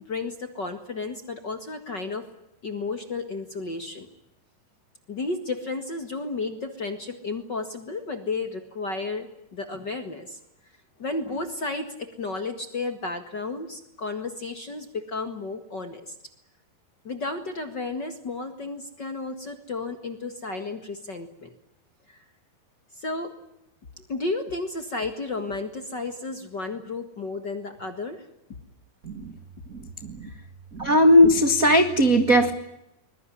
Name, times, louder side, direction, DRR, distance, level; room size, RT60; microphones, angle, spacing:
voice 1, 0.0-2.3 2.6-4.1 5.1-10.4 11.0-16.1 17.0-21.5 22.1-22.2 23.0-23.3 24.1-28.2, left 3 dB, 45° left, 8 dB, 1.5 m, -32 dB
voice 2, 30.7-32.5, left 1 dB, 75° right, 8 dB, 0.8 m, -17 dB
24.0 x 21.5 x 10.0 m, 0.84 s
omnidirectional pair, 4.7 m